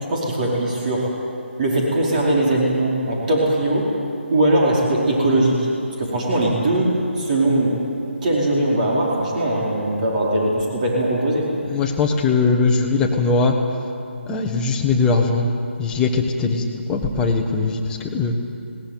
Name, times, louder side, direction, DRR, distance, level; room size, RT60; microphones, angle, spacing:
voice 1, 0.1-1.1 1.6-3.8 4.3-5.6 6.0-6.9 7.2-7.8 8.2-11.5, right 1 dB, 40° right, -3 dB, 4.9 m, -20 dB
voice 2, 11.7-13.6 14.3-15.5 15.8-18.3, left 4 dB, 10° left, 0 dB, 1.6 m, -20 dB
20.5 x 18.0 x 9.5 m, 2.6 s
figure-of-eight pair, 155°, 7 cm